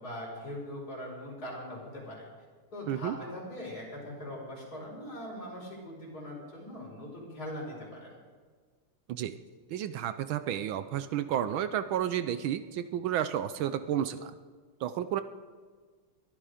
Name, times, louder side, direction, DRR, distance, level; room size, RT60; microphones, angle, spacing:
voice 1, 0.0-2.3 2.7-8.2, left 1 dB, 45° left, -3 dB, 5.8 m, -41 dB
voice 2, 9.7-14.3 14.8-15.2, right 10 dB, 75° right, 11 dB, 1.4 m, -31 dB
22.0 x 12.5 x 5.0 m, 1.5 s
omnidirectional pair, 2.3 m